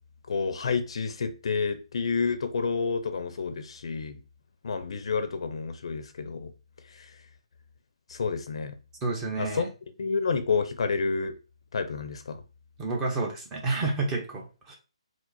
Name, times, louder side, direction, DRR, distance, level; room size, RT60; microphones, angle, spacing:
voice 1, 0.3-4.2 4.6-6.5 7.0-7.1 8.1-8.7 9.4-9.6 10.0-11.3 11.7-12.4, left 5 dB, 55° left, 0.6 m, -29 dB
voice 2, 9.0-9.7 12.8-14.7, right 3 dB, 15° right, 0.8 m, -30 dB
4.7 x 2.0 x 4.0 m
hypercardioid pair, 160°, 3 cm